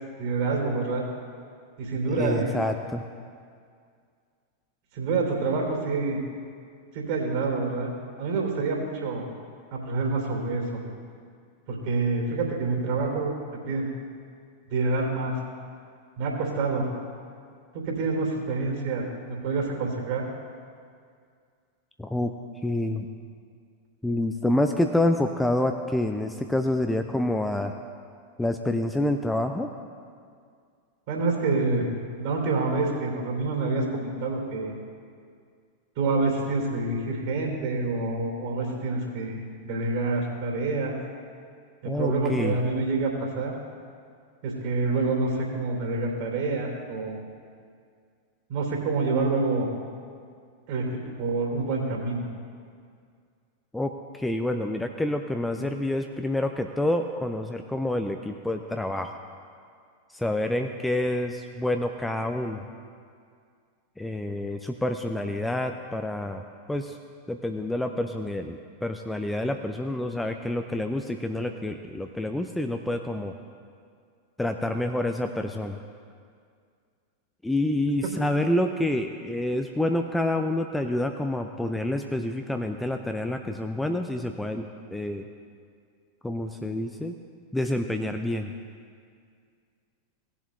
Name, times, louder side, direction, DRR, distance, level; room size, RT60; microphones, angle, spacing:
voice 1, 0.2-1.0 1.8-2.7 4.9-6.2 6.9-7.9 8.2-9.2 9.7-10.8 11.7-13.4 13.7-13.9 14.7-15.3 16.2-16.9 17.7-20.2 31.1-31.9 32.2-34.7 36.0-40.9 41.8-43.5 44.4-47.2 48.5-49.7 50.7-52.3, right 3 dB, 50° right, 0 dB, 3.1 m, -27 dB
voice 2, 2.1-3.0 22.0-22.3 22.6-23.1 24.0-27.7 28.4-29.7 41.8-42.6 53.7-59.1 60.1-62.6 64.0-66.4 66.7-66.9 67.3-73.3 74.4-75.8 77.4-85.3 86.2-87.2 87.5-88.5, left 1 dB, 5° left, 5 dB, 0.5 m, -28 dB
18.0 x 7.2 x 3.1 m, 2.2 s
figure-of-eight pair, 90°, 0 cm